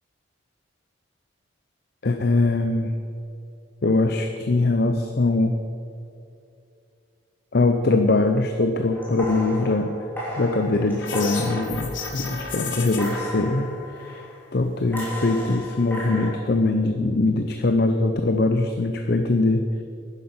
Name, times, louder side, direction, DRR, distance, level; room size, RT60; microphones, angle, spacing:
voice 1, 2.0-2.9 3.8-5.6 7.5-10.0 10.4-14.2 14.5-19.7, left 2 dB, 55° left, 6 dB, 0.6 m, -22 dB
sound 1, 8.9-12.6 13.0-14.4 14.9-16.3, left 1 dB, 10° left, 3.0 m, -34 dB
sound 2, 11.0-13.2, left 6 dB, 80° left, 1.8 m, -33 dB
11.0 x 9.9 x 5.5 m, 2.6 s
head